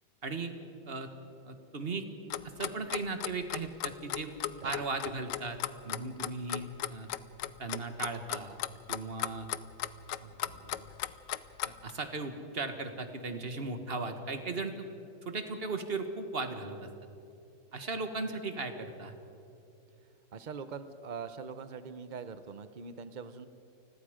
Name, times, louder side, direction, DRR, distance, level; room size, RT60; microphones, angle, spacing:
voice 1, 0.2-0.5 0.9-1.1 1.4-2.0 2.6-4.4 4.6-5.6 5.8-7.1 7.6-8.6 8.9-9.5 10.2-10.9 11.6-14.9 15.2-16.9 17.7-19.1, right 3 dB, 35° right, 7 dB, 1.6 m, -37 dB
Clock, 2.3-11.9, left 12 dB, 70° left, 1.3 m, -36 dB
voice 2, 20.3-23.5, right 5 dB, 85° right, 11 dB, 0.4 m, -42 dB
29.0 x 21.0 x 5.1 m, 2.7 s
omnidirectional pair, 2.1 m